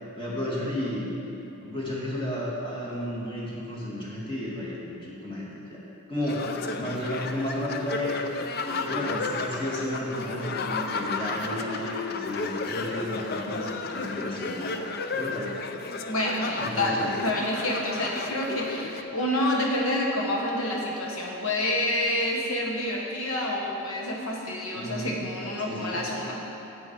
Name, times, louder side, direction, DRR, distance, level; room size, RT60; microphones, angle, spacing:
voice 1, 0.2-1.1 1.6-4.9 5.2-5.8 6.1-6.5 6.8-8.2 8.8-14.7 15.1-15.5 16.6-17.1 24.7-25.2 25.6-26.0, left 1 dB, 20° left, -6 dB, 1.7 m, -32 dB
sound 1, 6.3-19.0, left 3 dB, 45° left, 0.4 m, -33 dB
voice 2, 16.1-26.4, left 1 dB, 75° left, -2 dB, 1.4 m, -28 dB
9.2 x 7.7 x 4.6 m, 2.9 s
head